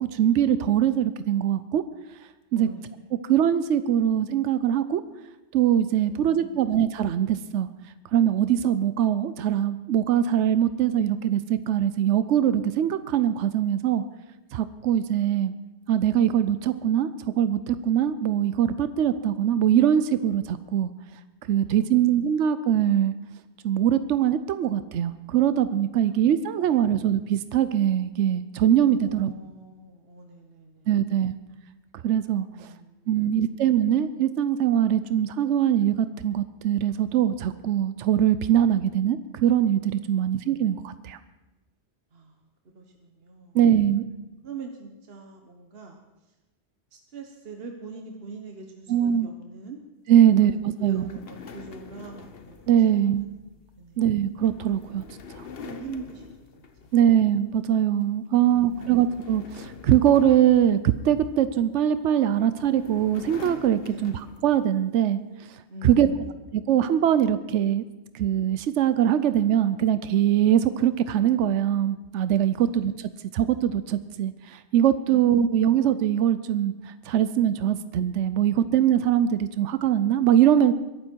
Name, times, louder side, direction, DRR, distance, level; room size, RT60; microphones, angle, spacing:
voice 1, 0.0-1.8 2.5-2.7 3.3-5.0 5.5-7.7 8.1-14.0 14.5-15.5 15.9-17.1 17.4-20.9 21.5-23.1 23.6-29.3 30.9-31.3 32.0-32.7 33.1-41.2 43.5-44.0 48.9-49.3 50.1-51.1 52.7-53.3 54.0-55.0 55.3-55.4 56.9-65.2 65.8-66.1 66.5-67.8 68.1-80.7, right 10 dB, 80° right, 12 dB, 1.0 m, -22 dB
voice 2, 2.5-3.0 6.0-6.6 21.6-22.2 26.0-26.3 29.0-30.9 32.5-33.5 40.1-40.5 42.1-42.5 42.7-43.6 43.8-46.0 46.9-49.8 50.4-53.0 53.8-54.0 55.6-56.9 58.4-59.0 63.8-64.1 65.7-66.3 72.5-72.8 75.1-75.5, right 3 dB, 60° right, 3 dB, 1.3 m, -43 dB
sound 1, 50.8-57.4 57.7-58.0 58.4-61.4 62.2-64.7, left 6 dB, 55° left, 1.2 m, -45 dB
22.0 x 12.5 x 4.5 m, 1.1 s
omnidirectional pair, 1.2 m